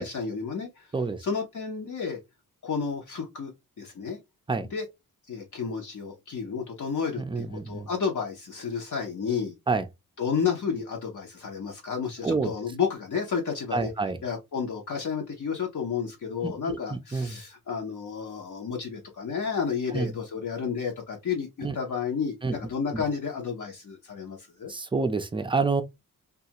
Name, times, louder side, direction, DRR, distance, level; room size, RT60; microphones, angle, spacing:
voice 1, 0.0-0.9 1.2-2.2 2.6-3.5 3.8-4.2 4.6-4.9 5.3-9.5 10.2-13.9 14.2-24.7, left 6 dB, 60° left, 0.8 m, -31 dB
voice 2, 7.2-7.9 9.7-9.8 12.2-12.5 13.7-14.2 16.4-17.4 19.9-20.1 21.6-21.8 22.4-22.6 22.9-23.0 24.7-25.8, right 4 dB, 15° right, 0.4 m, -28 dB
2.6 x 2.4 x 2.8 m
wide cardioid pair, 125°, 34 cm